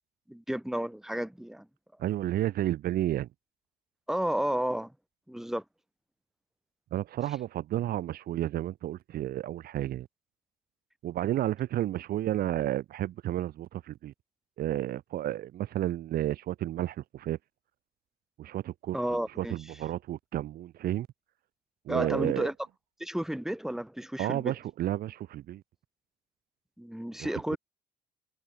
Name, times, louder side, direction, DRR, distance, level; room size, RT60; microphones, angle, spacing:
voice 1, 0.3-1.7 4.1-4.9 5.3-5.6 18.9-19.6 21.9-22.5 23.0-24.5 26.8-27.6, right 1 dB, ahead, 2.1 m, -32 dB
voice 2, 2.0-3.3 6.9-10.1 11.0-14.1 14.6-17.4 18.4-19.0 19.4-21.1 21.9-22.5 24.2-25.6 27.2-27.6, right 13 dB, 65° right, 1.4 m, -31 dB
cardioid pair, 110°, 17 cm